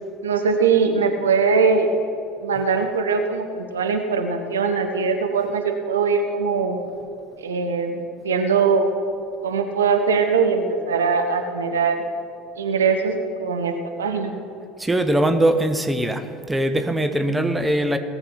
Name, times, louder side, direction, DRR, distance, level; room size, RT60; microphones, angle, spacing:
voice 1, 0.2-1.9 2.4-6.8 7.4-8.9 9.4-12.0 12.6-14.3, right 5 dB, 75° right, 5 dB, 1.0 m, -21 dB
voice 2, 14.8-18.0, right 1 dB, 10° right, 8 dB, 0.9 m, -21 dB
18.0 x 7.1 x 5.9 m, 2.5 s
figure-of-eight pair, 65°, 0 cm